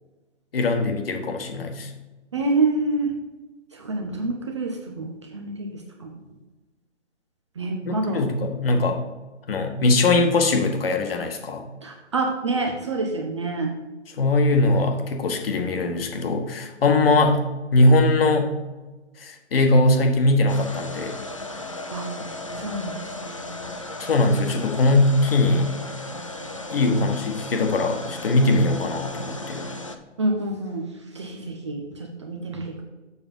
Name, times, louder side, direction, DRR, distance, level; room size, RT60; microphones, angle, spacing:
voice 1, 0.5-1.9 7.8-9.0 9.5-11.6 14.2-17.4 17.7-18.5 19.2-21.1 24.0-25.7 26.7-29.6, left 2 dB, 50° left, 4 dB, 1.5 m, -21 dB
voice 2, 2.3-3.1 3.7-6.1 7.6-8.3 11.8-13.7 21.9-22.1 22.6-23.1 30.2-30.9 31.1-32.8, right 2 dB, 25° right, 2 dB, 0.6 m, -27 dB
sound 1, 20.5-30.0, left 2 dB, 30° left, 0.4 m, -35 dB
7.1 x 5.3 x 5.3 m, 1.2 s
hypercardioid pair, 150°, 36 cm